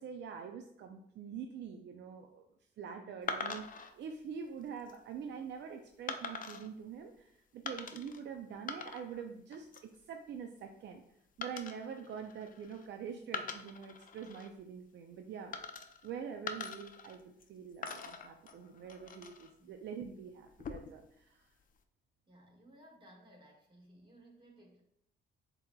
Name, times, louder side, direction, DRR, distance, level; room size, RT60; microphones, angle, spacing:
voice 1, 0.0-2.5 2.8-3.7 3.9-11.0 11.4-15.5 16.0-21.5, right 7 dB, 65° right, 4 dB, 0.4 m, -45 dB
sound 1, 3.3-3.9 4.6-5.0 6.1-6.7 7.7-8.2 8.5-9.2 9.5-10.0 11.4-12.9 13.2-14.5 15.5-16.1 16.5-17.5 17.8-19.5 20.5-21.1, left 5 dB, 45° left, 0.5 m, -43 dB
voice 2, 22.3-24.8, right 1 dB, 25° right, -1 dB, 1.6 m, -59 dB
7.4 x 2.9 x 2.2 m, 0.73 s
cardioid pair, 90°, 20 cm